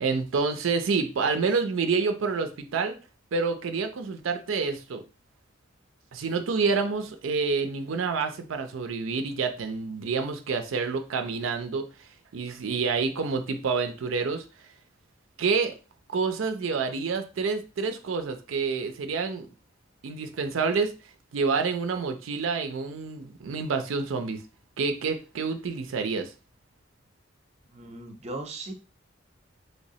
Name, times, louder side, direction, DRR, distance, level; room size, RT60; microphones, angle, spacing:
voice 1, 0.0-3.0 3.3-5.0 6.1-11.8 12.3-14.4 15.4-15.7 16.1-19.5 20.0-20.9 21.3-24.4 24.8-26.3, right 4 dB, 85° right, 7 dB, 0.4 m, -28 dB
voice 2, 27.7-28.7, right 2 dB, 35° right, 5 dB, 0.6 m, -38 dB
3.2 x 3.0 x 2.7 m, 0.33 s
head